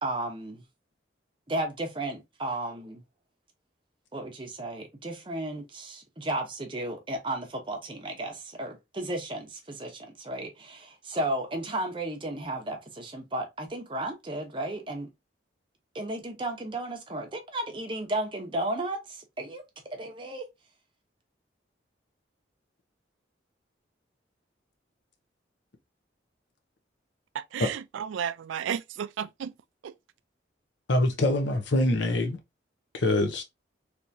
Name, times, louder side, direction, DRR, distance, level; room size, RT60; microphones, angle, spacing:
voice 1, 0.0-0.6 1.5-3.0 4.1-15.1 15.9-19.6 19.9-20.5, right 1 dB, 25° right, 0.7 m, -34 dB
voice 2, 27.3-29.5 29.8-29.9, right 8 dB, 90° right, 0.3 m, -33 dB
voice 3, 30.9-32.4 32.9-33.4, left 1 dB, 75° left, 0.7 m, -24 dB
3.4 x 2.9 x 2.6 m
head